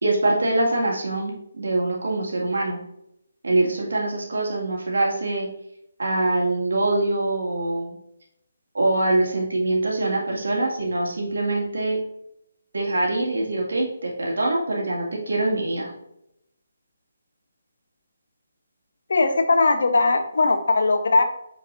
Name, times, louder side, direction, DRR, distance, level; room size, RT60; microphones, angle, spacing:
voice 1, 0.0-2.8 3.4-5.5 6.0-8.0 8.7-12.0 12.7-15.9, right 2 dB, 70° right, -2 dB, 2.1 m, -24 dB
voice 2, 19.1-21.2, left 3 dB, 65° left, 6 dB, 1.0 m, -19 dB
7.9 x 4.6 x 2.6 m, 0.78 s
figure-of-eight pair, 145°, 0 cm